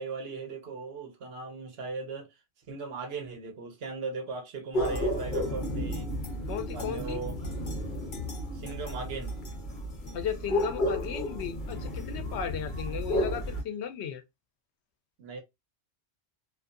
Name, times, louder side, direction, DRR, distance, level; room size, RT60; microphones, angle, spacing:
voice 1, 0.0-2.3 2.7-6.1 6.7-7.4 8.5-9.3 15.2-15.4, right 4 dB, 70° right, 0.9 m, -38 dB
sound 1, 4.7-13.6, equal, 50° left, 0.9 m, -32 dB
voice 2, 6.5-7.2 10.1-14.2, left 8 dB, 90° left, 0.9 m, -35 dB
2.6 x 2.5 x 2.4 m
omnidirectional pair, 1.1 m